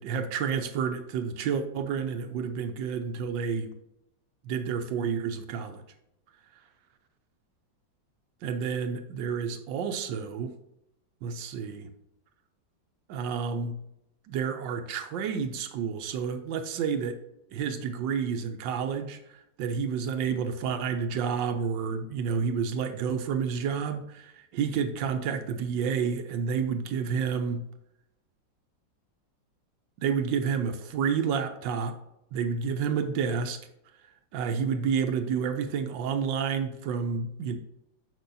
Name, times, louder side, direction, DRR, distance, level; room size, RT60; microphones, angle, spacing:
voice 1, 0.0-3.7 4.4-5.8 8.4-10.5 11.2-11.9 13.1-13.8 14.3-17.2 17.5-27.6 30.0-32.0 32.3-33.6 34.3-37.6, right 6 dB, 80° right, 7 dB, 1.3 m, -30 dB
6.8 x 6.1 x 2.7 m, 0.85 s
omnidirectional pair, 2.0 m